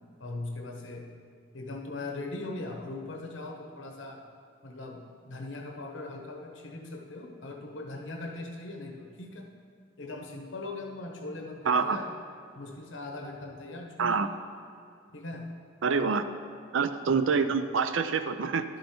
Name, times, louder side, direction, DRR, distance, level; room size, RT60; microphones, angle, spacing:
voice 1, 0.2-1.1 1.5-4.2 4.6-9.5 10.0-12.1 12.5-14.2 15.1-15.5 15.9-16.2 17.1-17.5, left 2 dB, 70° left, 1 dB, 1.1 m, -40 dB
voice 2, 11.7-12.0 14.0-14.3 15.8-16.2 16.7-18.6, right 5 dB, 75° right, 10 dB, 0.5 m, -26 dB
11.5 x 5.5 x 4.4 m, 2.4 s
head